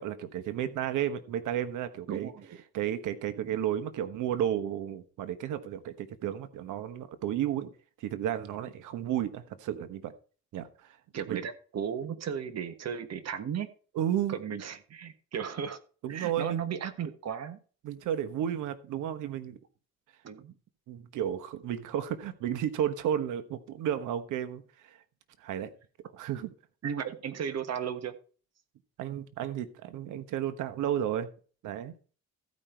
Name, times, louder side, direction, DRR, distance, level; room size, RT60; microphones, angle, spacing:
voice 1, 0.0-2.3 2.7-7.7 8.0-10.1 10.5-10.7 11.3-11.4 13.9-14.3 16.0-16.6 17.8-19.6 20.9-25.0 25.4-25.7 26.1-26.5 29.0-31.3 31.6-31.9, right 10 dB, 85° right, 1.2 m, -32 dB
voice 2, 2.1-2.6 11.1-13.7 14.3-15.8 16.1-17.6 20.2-20.5 26.8-28.1, right 8 dB, 60° right, 1.4 m, -35 dB
15.0 x 5.3 x 4.4 m
cardioid pair, 90°, 30 cm